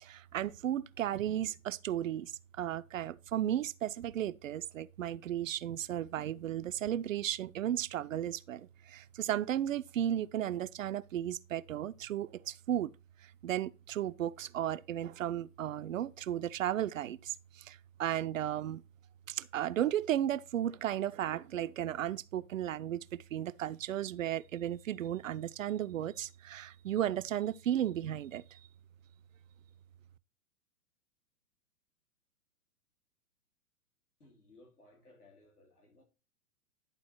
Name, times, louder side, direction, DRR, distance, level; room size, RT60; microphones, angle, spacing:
voice 1, 0.0-2.3 2.6-12.9 13.4-18.8 19.3-28.6, right 11 dB, 60° right, 0.5 m, -34 dB
voice 2, 34.2-36.0, left 2 dB, 85° left, 3.1 m, -61 dB
10.5 x 4.0 x 4.4 m
figure-of-eight pair, 110°, 44 cm